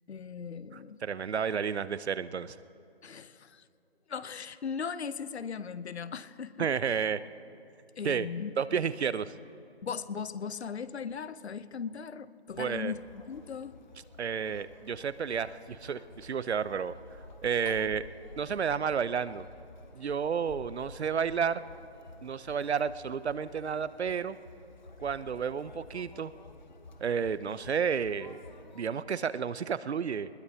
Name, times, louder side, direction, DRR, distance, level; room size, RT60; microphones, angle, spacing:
voice 1, 0.1-1.0 3.0-3.6 4.1-7.0 8.0-8.8 9.8-13.7 17.7-17.9, left 6 dB, 80° left, 15 dB, 0.8 m, -38 dB
voice 2, 1.0-2.6 6.6-7.2 8.0-8.3 8.6-9.3 12.6-13.0 14.2-16.9 17.4-18.0 18.4-19.5 19.9-21.6 22.2-24.4 25.0-26.3 27.0-28.4 28.7-30.3, right 6 dB, 80° right, 16 dB, 0.7 m, -31 dB
Conversation, 12.5-28.8, left 2 dB, 45° left, 0.9 m, -51 dB
21.0 x 21.0 x 2.8 m, 2.6 s
hypercardioid pair, 175°, 32 cm